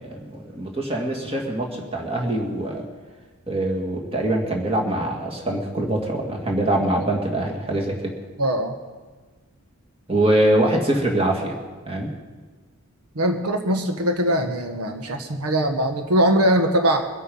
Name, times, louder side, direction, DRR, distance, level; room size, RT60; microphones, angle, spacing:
voice 1, 0.0-2.8 3.5-8.1 10.1-11.6 11.9-12.1, right 1 dB, 25° right, 0 dB, 2.2 m, -23 dB
voice 2, 8.4-8.7 13.1-17.1, right 1 dB, 85° right, 5 dB, 1.3 m, -21 dB
23.0 x 8.6 x 5.5 m, 1.3 s
head